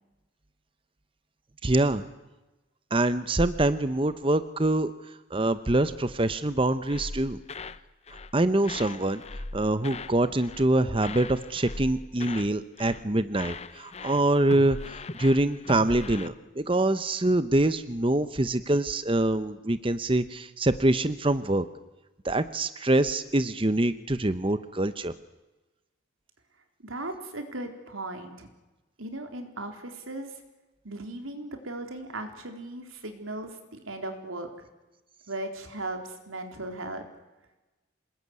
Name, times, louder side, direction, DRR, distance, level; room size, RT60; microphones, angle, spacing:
voice 1, 1.6-2.0 2.9-4.9 5.3-7.4 8.3-9.2 9.5-21.7 22.2-25.1, right 1 dB, 25° right, 12 dB, 0.8 m, -25 dB
sound 1, 6.9-7.8 8.1-8.4 8.6-10.2 10.4-10.7 11.0-12.5 12.8-13.1 13.3-16.3, left 3 dB, 30° left, 0.8 m, -39 dB
voice 2, 26.8-28.5 29.0-30.4 30.8-34.7 35.3-37.0, right 2 dB, 90° right, 5 dB, 4.1 m, -37 dB
27.0 x 20.0 x 9.7 m, 1.1 s
head